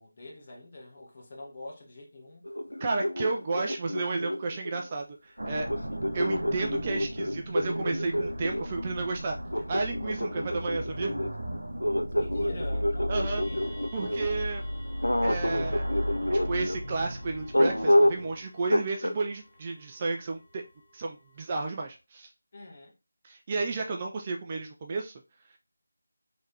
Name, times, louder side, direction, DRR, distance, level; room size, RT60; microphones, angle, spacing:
voice 1, 0.0-2.4 12.2-14.4 22.5-22.9, left 2 dB, 35° left, 1.0 m, -44 dB
sound 1, 2.5-4.9 5.7-8.7 9.5-14.3 15.0-16.8 17.5-18.3 18.7-19.2, equal, 85° left, 0.4 m, -28 dB
voice 2, 2.8-5.7 6.1-9.4 9.7-11.1 13.1-13.4 13.9-14.6 15.2-15.8 16.3-20.6 20.9-22.3 23.2-25.1, right 3 dB, 25° right, 0.3 m, -32 dB
sound 2, 5.4-18.4, equal, 75° right, 0.7 m, -36 dB
sound 3, 13.2-21.9, equal, 5° right, 1.3 m, -55 dB
3.3 x 3.2 x 2.7 m
figure-of-eight pair, 160°, 0 cm